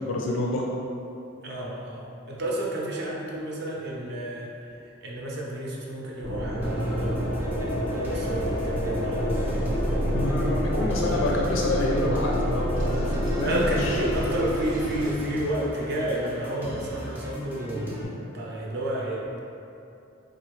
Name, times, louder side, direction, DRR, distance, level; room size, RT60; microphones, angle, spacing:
voice 1, 0.1-0.6 10.1-13.0 13.4-13.6, left 2 dB, 75° left, -2 dB, 0.4 m, -27 dB
voice 2, 1.4-4.5 5.0-7.3 7.6-10.3 10.8-11.3 13.4-18.0 18.3-19.4, right 1 dB, 55° right, -3 dB, 0.6 m, -31 dB
sound 1, 6.2-15.1, equal, 85° right, 0.9 m, -27 dB
sound 2, 6.6-18.0, equal, 10° right, 0.5 m, -38 dB
4.0 x 2.5 x 3.1 m, 2.7 s
head